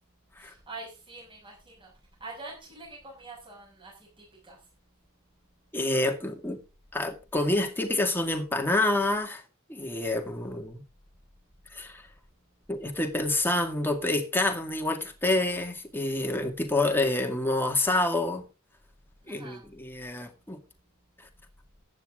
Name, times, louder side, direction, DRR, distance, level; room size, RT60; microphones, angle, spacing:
voice 1, 0.4-1.9 2.2-4.6 19.2-19.6, right 3 dB, 25° right, 6.2 m, -45 dB
voice 2, 5.7-6.6 6.9-9.4 9.7-10.8 11.7-12.0 12.7-18.4 19.3-20.6, left 2 dB, 10° left, 2.0 m, -28 dB
14.5 x 9.6 x 3.7 m
head